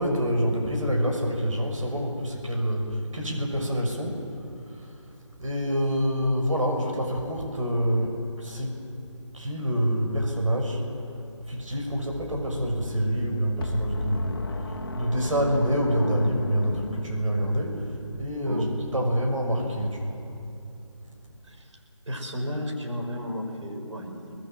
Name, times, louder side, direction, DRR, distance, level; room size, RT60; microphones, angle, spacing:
voice 1, 0.0-4.4 4.6-5.1 5.4-8.8 9.3-11.0 11.4-20.3, equal, 90° right, 1 dB, 6.4 m, -27 dB
sound 1, 13.6-17.6, left 3 dB, 45° left, 1.7 m, -36 dB
voice 2, 21.4-21.8 22.1-24.3, equal, 70° right, 3 dB, 5.8 m, -33 dB
29.0 x 20.5 x 7.7 m, 2.7 s
figure-of-eight pair, 180°, 16 cm